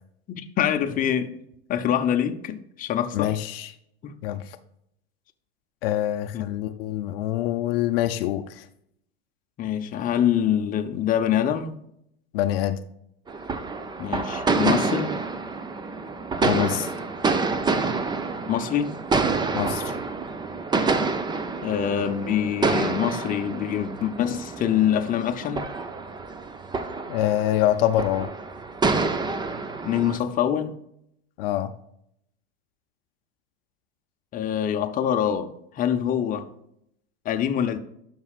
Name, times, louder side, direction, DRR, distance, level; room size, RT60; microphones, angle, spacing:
voice 1, 0.3-1.3 1.7-3.4 4.0-4.1 6.3-6.4 9.6-11.8 14.0-15.2 18.5-18.9 21.6-25.7 29.8-30.7 34.3-35.5 35.7-36.5 37.2-37.8, left 9 dB, 25° left, 6 dB, 0.7 m, -25 dB
voice 2, 3.1-3.7 4.2-4.6 5.8-8.7 12.3-12.8 16.4-16.9 19.5-19.9 27.1-28.3 31.4-31.7, left 12 dB, 65° left, 9 dB, 0.6 m, -25 dB
sound 1, 13.3-30.2, right 4 dB, 15° right, 0.6 m, -28 dB
11.0 x 5.6 x 2.4 m, 0.75 s
hypercardioid pair, 110°, 31 cm